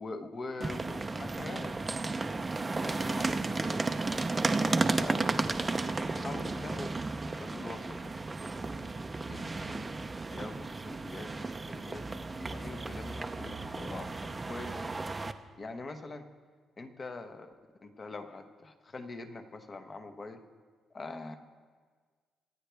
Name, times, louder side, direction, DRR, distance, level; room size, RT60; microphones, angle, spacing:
voice 1, 0.0-1.8 2.7-3.9 4.3-5.3 5.6-7.0 7.3-8.2 8.5-9.0 9.3-15.0 15.6-16.3 16.8-17.5 17.8-20.4 20.9-21.4, left 3 dB, 35° left, 7 dB, 1.1 m, -44 dB
sound 1, 0.6-15.3, right 3 dB, 25° right, 0.6 m, -33 dB
25.0 x 9.1 x 3.5 m, 1.5 s
cardioid pair, 90°, 0 cm